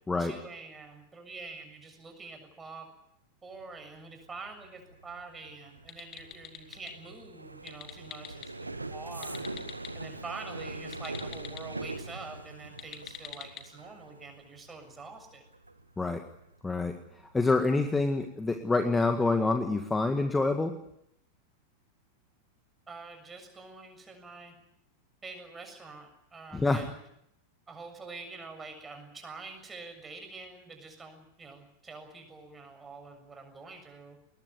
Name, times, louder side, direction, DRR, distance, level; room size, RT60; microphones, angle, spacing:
voice 1, 0.2-2.9 3.4-9.7 9.9-15.4 22.9-24.6 25.2-27.0 27.7-34.2, right 3 dB, 15° right, 5 dB, 7.0 m, -46 dB
sound 1, 3.5-18.2 18.5-18.9 19.2-19.6, right 2 dB, 85° right, 1.5 m, -43 dB
sound 2, 5.8-6.9 7.5-8.5 9.1-9.9 10.8-11.6 12.7-13.6, left 10 dB, 30° left, 2.8 m, -45 dB
voice 2, 16.6-17.0 17.3-20.8 26.5-26.8, left 3 dB, 10° left, 6 dB, 1.8 m, -26 dB
21.5 x 20.5 x 9.4 m, 0.76 s
figure-of-eight pair, 90°, 0 cm